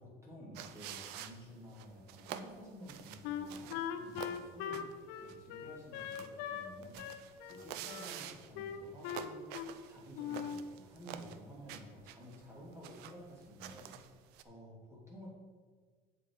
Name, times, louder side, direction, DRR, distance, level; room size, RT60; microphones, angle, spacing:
voice 1, 0.0-4.9 5.2-9.6 9.8-13.9 14.4-15.3, equal, 15° right, -5 dB, 2.9 m, -52 dB
sound 1, 0.5-14.4, right 10 dB, 85° right, 0.6 m, -49 dB
Wind instrument woodwind instrument, 3.2-6.7 7.0-8.1 8.5-9.8 10.1-10.6, left 9 dB, 90° left, 0.7 m, -41 dB
8.4 x 7.7 x 4.8 m, 1.5 s
cardioid pair, 135°, 16 cm